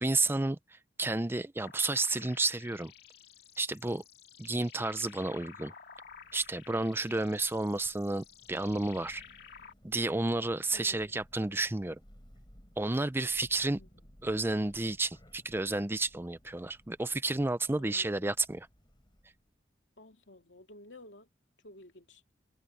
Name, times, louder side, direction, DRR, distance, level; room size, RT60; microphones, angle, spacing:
voice 1, 0.0-2.9 3.6-4.0 4.4-5.7 6.3-9.2 9.8-12.0 12.8-13.8 14.2-18.7, right 2 dB, 15° right, 0.5 m, -31 dB
sound 1, 1.6-9.7, left 7 dB, 60° left, 2.1 m, -53 dB
Thunder, 5.9-19.5, equal, 25° left, 5.9 m, -60 dB
voice 2, 17.8-18.3 20.0-21.3 21.6-22.2, left 1 dB, 85° left, 2.8 m, -53 dB
head